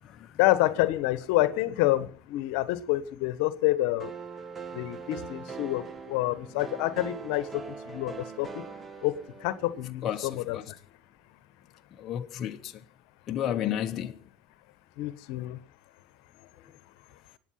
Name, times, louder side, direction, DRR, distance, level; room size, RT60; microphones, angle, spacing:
voice 1, 0.4-4.1 4.7-8.6 9.0-10.7 15.0-15.6, left 16 dB, 70° left, 1.3 m, -28 dB
sound 1, 4.0-9.9, right 5 dB, 30° right, 1.7 m, -42 dB
voice 2, 10.0-10.6 12.0-12.6 13.3-14.1, left 10 dB, 45° left, 1.1 m, -31 dB
24.0 x 9.4 x 5.7 m
supercardioid pair, 90°, 0 cm